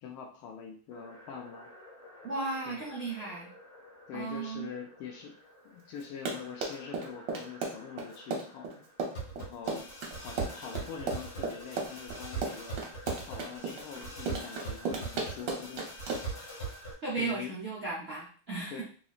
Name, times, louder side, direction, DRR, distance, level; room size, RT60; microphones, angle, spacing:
voice 1, 0.0-1.7 2.7-2.8 4.1-5.3 5.6-8.7 9.4-9.9 10.1-12.8 13.2-15.8 17.1-17.7 18.7-18.8, left 7 dB, 90° left, 1 dB, 1.5 m, -44 dB
sound 1, 0.9-16.9, right 3 dB, 50° left, 2.0 m, -44 dB
voice 2, 2.2-3.5 4.1-4.7 17.0-18.8, right 3 dB, 85° right, -6 dB, 0.5 m, -35 dB
Run, 6.0-16.4, right 4 dB, 65° right, 1.4 m, -35 dB
3.8 x 3.1 x 2.3 m, 0.42 s
omnidirectional pair, 2.3 m